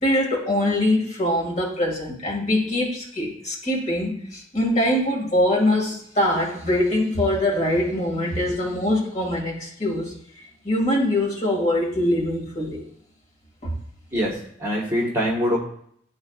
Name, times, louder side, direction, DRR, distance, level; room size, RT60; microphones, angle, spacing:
voice 1, 0.0-12.8 13.6-13.7, left 1 dB, 35° left, -3 dB, 2.0 m, -23 dB
voice 2, 14.1-15.6, equal, 15° right, -5 dB, 1.3 m, -24 dB
11.5 x 3.8 x 2.4 m, 0.68 s
head